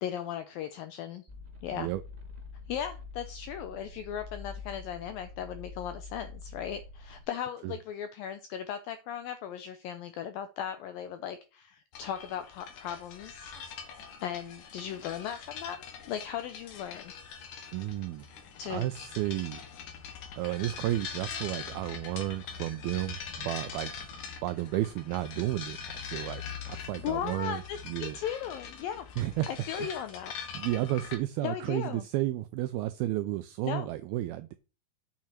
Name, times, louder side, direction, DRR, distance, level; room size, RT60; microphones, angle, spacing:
voice 1, 0.0-1.3 1.6-1.9 2.7-17.1 18.6-18.9 27.0-29.1 29.5-30.3 31.4-32.0 33.7-33.9, left 9 dB, 85° left, 10 dB, 2.0 m, -37 dB
sound 1, 1.3-7.2, left 4 dB, 35° right, 0.6 m, -46 dB
sound 2, 11.9-31.1, left 6 dB, 60° left, 2.6 m, -43 dB
voice 2, 17.7-18.3 18.7-19.6 20.4-23.9 24.4-25.8 26.1-28.2 29.2-29.5 29.8-29.9 30.5-34.6, right 15 dB, 90° right, 11 dB, 2.1 m, -32 dB
8.5 x 7.6 x 4.4 m, 0.32 s
omnidirectional pair, 5.0 m